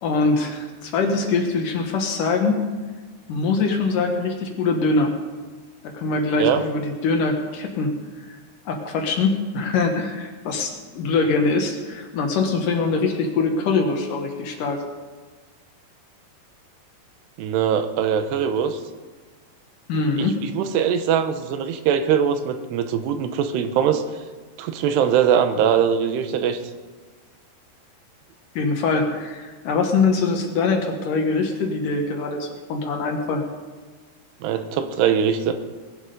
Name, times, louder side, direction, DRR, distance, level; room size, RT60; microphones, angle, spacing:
voice 1, 0.0-2.6 3.3-5.1 5.8-8.0 8.3-8.4 8.7-14.8 19.9-20.4 28.6-33.4, left 4 dB, 65° left, 3 dB, 2.6 m, -23 dB
voice 2, 17.4-18.8 20.2-20.3 20.6-24.0 24.6-26.6 34.4-35.5, right 8 dB, 85° right, 8 dB, 3.1 m, -21 dB
20.0 x 11.0 x 5.2 m, 1.4 s
omnidirectional pair, 4.7 m